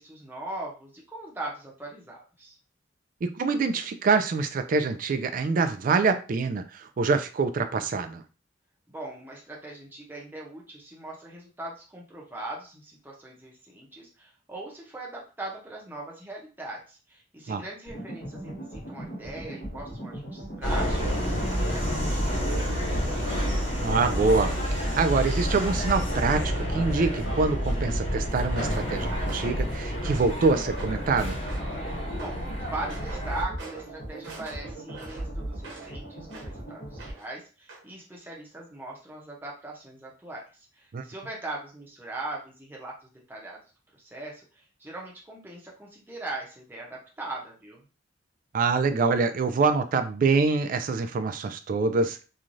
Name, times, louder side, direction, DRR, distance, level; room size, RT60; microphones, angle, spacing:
voice 1, 0.0-2.6 8.9-21.3 21.7-23.6 32.1-43.6 44.0-47.8, right 2 dB, 10° right, -3 dB, 0.6 m, -40 dB
voice 2, 3.2-8.2 17.5-17.6 23.8-31.4 40.9-41.0 48.5-52.2, right 4 dB, 45° right, 9 dB, 0.3 m, -25 dB
sound 1, 17.9-37.1, right 1 dB, 65° left, 1.1 m, -39 dB
Subway metro underground, 20.6-33.4, equal, 80° left, 1.5 m, -29 dB
sound 2, 28.5-28.9 29.3-29.6 30.0-30.4 30.8-31.1 31.5-31.8 32.2-32.4 32.9-33.3 33.6-33.9 34.2-35.9 36.3-36.6 37.0-37.4 37.7-37.9, right 3 dB, 65° right, 0.9 m, -45 dB
3.1 x 2.3 x 2.5 m, 0.35 s
head